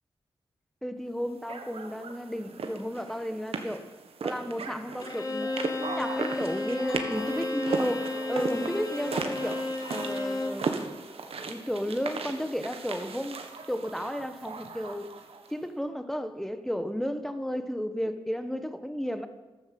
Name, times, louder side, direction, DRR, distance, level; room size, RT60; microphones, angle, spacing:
voice 1, 0.8-3.8 4.2-9.6 9.9-10.8 11.4-15.2 15.5-19.3, equal, 5° left, 9 dB, 1.4 m, -33 dB
sound 1, 1.5-15.5, right 4 dB, 85° right, 1.6 m, -37 dB
Bowed string instrument, 5.0-10.7, left 2 dB, 40° left, 2.1 m, -33 dB
Chink clink, 6.9-12.1, equal, 80° left, 3.1 m, -45 dB
13.5 x 13.0 x 7.8 m, 1.2 s
wide cardioid pair, 85°, 10 cm